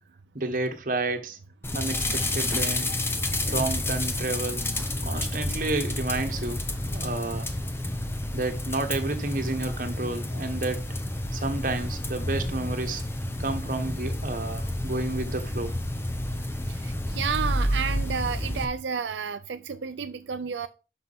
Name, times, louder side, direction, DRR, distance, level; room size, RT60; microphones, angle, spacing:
voice 1, 0.3-1.4 1.7-2.9 3.5-4.6 5.0-6.6 6.9-7.5 8.3-10.9 11.3-13.0 13.4-15.7, right 2 dB, 50° right, 1.3 m, -30 dB
sound 1, 1.6-18.6, left 1 dB, 15° left, 0.8 m, -30 dB
voice 2, 16.7-20.7, right 6 dB, 90° right, 0.5 m, -31 dB
6.0 x 5.9 x 5.5 m
head